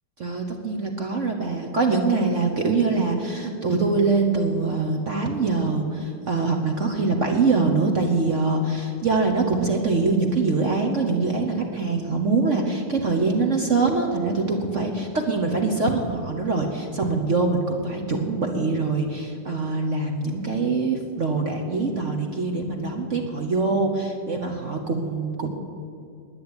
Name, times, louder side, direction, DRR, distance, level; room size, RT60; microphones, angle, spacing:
voice 1, 0.2-25.5, right 3 dB, 50° right, 3 dB, 0.9 m, -24 dB
10.5 x 9.9 x 9.8 m, 2.5 s
omnidirectional pair, 2.4 m